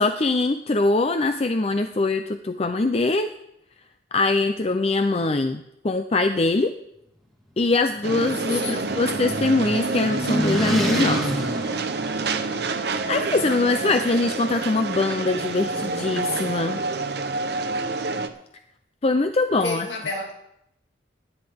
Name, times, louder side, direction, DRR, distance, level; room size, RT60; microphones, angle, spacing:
voice 1, 0.0-3.3 4.1-6.7 7.6-11.3 13.1-16.8 19.0-19.9, left 3 dB, 30° left, 0.5 m, -22 dB
sound 1, 8.0-12.8, equal, ahead, 1.8 m, -30 dB
sound 2, 8.0-18.3, right 3 dB, 55° right, 0.8 m, -28 dB
voice 2, 8.6-8.9 19.6-20.3, left 2 dB, 60° left, 2.3 m, -30 dB
17.5 x 10.5 x 3.6 m
head